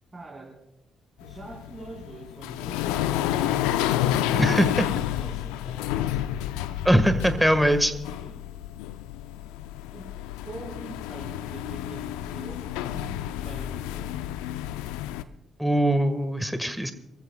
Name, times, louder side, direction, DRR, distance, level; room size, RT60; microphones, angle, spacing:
voice 1, 0.1-0.6 1.2-4.0 4.3-6.2 7.0-8.6 9.9-10.2 10.4-12.1 12.3-14.5, right 2 dB, 30° right, -5 dB, 4.3 m, -44 dB
sound 1, 1.2-15.2, left 12 dB, 80° left, 0.5 m, -30 dB
voice 2, 4.3-4.8 6.8-7.9 15.6-16.9, equal, 5° right, 8 dB, 1.7 m, -22 dB
27.0 x 14.5 x 2.4 m, 0.90 s
hypercardioid pair, 50°, 0 cm